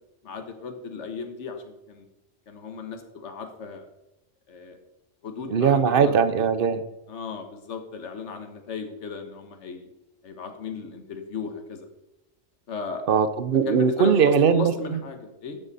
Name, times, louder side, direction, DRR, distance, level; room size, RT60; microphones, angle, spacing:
voice 1, 0.2-2.1 2.5-3.8 4.5-4.8 5.2-6.2 7.1-9.9 10.2-11.9 12.7-13.0 13.6-15.6, left 4 dB, 65° left, 6 dB, 1.5 m, -36 dB
voice 2, 5.5-6.8 13.1-14.7, right 6 dB, 50° right, 11 dB, 0.9 m, -20 dB
12.5 x 7.3 x 4.2 m, 0.97 s
omnidirectional pair, 1.3 m